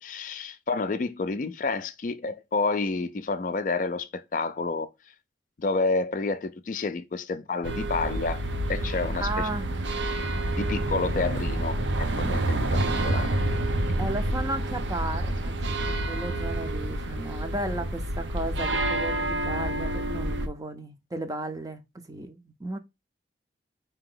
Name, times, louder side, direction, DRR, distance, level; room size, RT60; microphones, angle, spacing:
voice 1, 0.0-4.9 5.6-8.4 8.7-9.7 10.5-13.3, left 3 dB, 45° left, 0.4 m, -29 dB
sound 1, 7.6-20.5, right 1 dB, 80° right, 0.7 m, -28 dB
voice 2, 9.2-9.7 14.0-21.8 22.1-22.8, right 1 dB, 20° right, 0.5 m, -34 dB
4.8 x 2.8 x 3.7 m
head